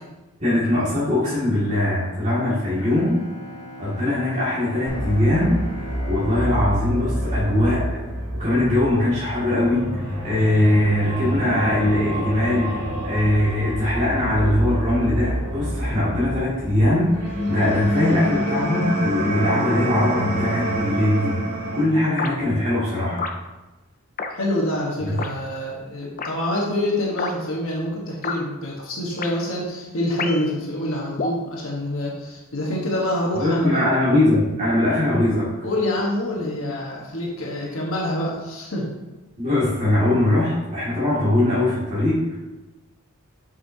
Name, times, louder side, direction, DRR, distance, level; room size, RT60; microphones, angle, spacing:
voice 1, 0.4-3.2 3.8-7.9 8.4-21.4 21.7-23.3 25.0-25.2 33.3-35.5 39.4-42.4, left 1 dB, 30° right, -10 dB, 2.2 m, -21 dB
Bowed string instrument, 2.7-8.4, equal, 90° left, 1.1 m, -41 dB
sound 1, 4.9-21.9, right 1 dB, 85° right, 1.9 m, -27 dB
sound 2, 22.2-22.4 23.2-23.4 24.2-24.3 25.2-25.3 26.2-26.3 27.2-27.3 28.2-28.4 29.2-29.3 30.2-30.5 31.2-31.4, left 4 dB, 40° left, 0.5 m, -28 dB
voice 2, 24.3-33.8 35.6-38.9, left 1 dB, 65° left, -3 dB, 1.3 m, -26 dB
8.1 x 5.6 x 2.8 m, 1.1 s
head